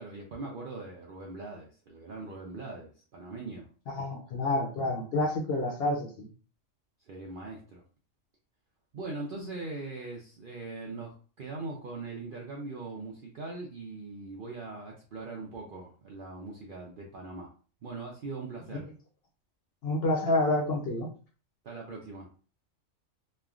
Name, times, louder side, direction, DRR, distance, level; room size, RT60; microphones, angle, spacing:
voice 1, 0.0-3.7 7.0-7.8 8.9-17.5 17.8-18.9 21.6-22.3, right 3 dB, 65° right, -1 dB, 0.5 m, -41 dB
voice 2, 3.9-6.3 19.8-21.1, left 2 dB, 60° left, 0 dB, 0.7 m, -28 dB
3.1 x 2.1 x 2.4 m, 0.38 s
omnidirectional pair, 1.4 m